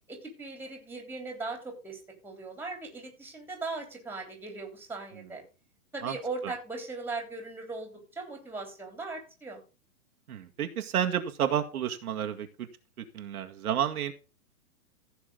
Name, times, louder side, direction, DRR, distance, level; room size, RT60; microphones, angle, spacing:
voice 1, 0.1-5.4 5.9-9.6, right 3 dB, 5° right, 3 dB, 3.2 m, -39 dB
voice 2, 10.3-12.7 13.1-14.1, right 9 dB, 75° right, 5 dB, 1.9 m, -30 dB
15.5 x 6.3 x 3.8 m, 0.33 s
hypercardioid pair, 150°, 45 cm